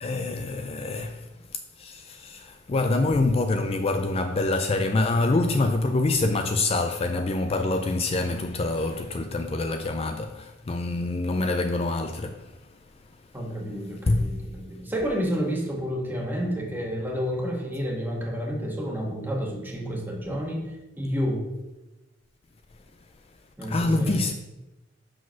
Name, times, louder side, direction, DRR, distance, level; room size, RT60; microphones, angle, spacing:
voice 1, 0.0-1.3 1.8-12.5 14.1-14.3 23.7-24.3, left 2 dB, 35° left, 0.4 m, -25 dB
voice 2, 13.3-20.7 21.0-21.5 23.6-24.2, equal, 10° right, 1.3 m, -30 dB
6.1 x 5.0 x 5.7 m
head